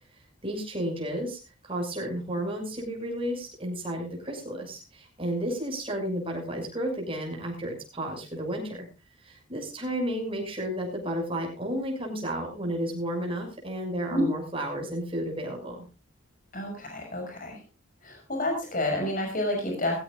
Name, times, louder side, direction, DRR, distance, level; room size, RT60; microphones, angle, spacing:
voice 1, 0.4-8.9 9.2-15.9, right 1 dB, 25° right, 0 dB, 6.3 m, -32 dB
voice 2, 16.5-17.6 18.0-20.0, left 1 dB, 40° left, 1 dB, 6.6 m, -29 dB
19.5 x 15.5 x 2.5 m, 0.29 s
head